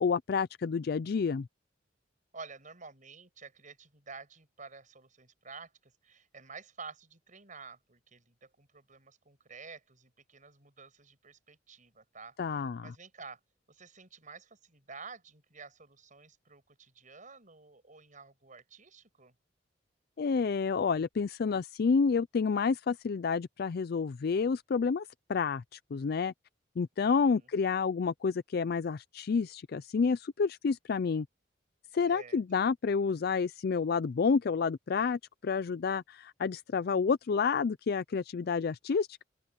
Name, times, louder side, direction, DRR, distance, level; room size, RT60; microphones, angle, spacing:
voice 1, 0.0-1.5 12.4-12.9 20.2-26.3 26.8-31.3 31.9-39.2, left 5 dB, 55° left, 0.4 m, -29 dB
voice 2, 2.3-13.4 13.7-19.3 27.0-27.5 32.1-32.4, right 4 dB, 45° right, 6.5 m, -50 dB
open air
head